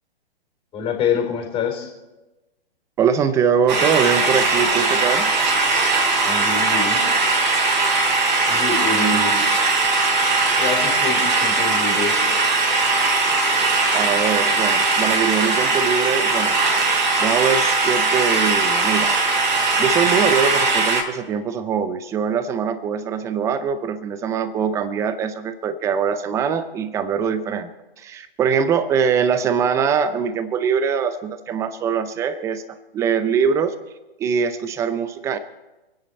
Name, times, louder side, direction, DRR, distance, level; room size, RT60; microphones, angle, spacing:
voice 1, 0.7-1.9 6.2-7.0 8.5-9.3 10.6-12.3, left 5 dB, 15° left, 2 dB, 3.8 m, -26 dB
voice 2, 3.0-5.3 8.9-9.5 13.9-16.6 17.2-19.1 19.8-27.7 28.0-33.7 34.2-35.4, right 7 dB, 10° right, 13 dB, 0.6 m, -22 dB
sound 1, 3.7-21.0, right 3 dB, 50° right, 3.6 m, -19 dB
27.5 x 10.0 x 4.2 m, 1.1 s
figure-of-eight pair, 125°, 30 cm